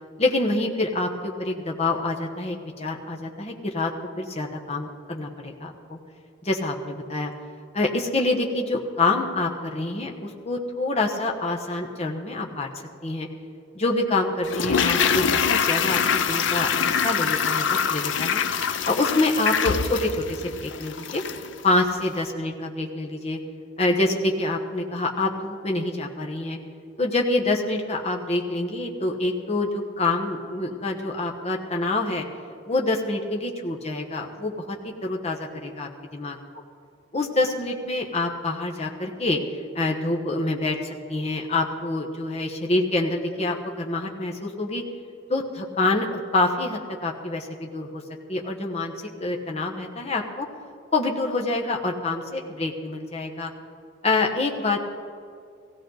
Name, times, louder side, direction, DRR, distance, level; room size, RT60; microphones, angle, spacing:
voice 1, 0.2-3.9 4.2-6.0 6.4-7.3 7.7-12.7 13.0-13.3 13.7-18.4 18.8-21.2 21.6-23.4 23.8-26.6 27.0-32.2 32.7-35.9 36.2-36.3 37.1-39.4 39.7-40.8 41.1-44.8 45.3-48.0 48.3-48.9 49.2-50.5 50.9-53.5 54.0-54.8, left 2 dB, 35° left, 1 dB, 1.1 m, -26 dB
Toilet flush, 14.4-21.5 21.8-21.9, left 7 dB, 70° left, 0.6 m, -24 dB
16.5 x 16.0 x 4.0 m, 2.3 s
head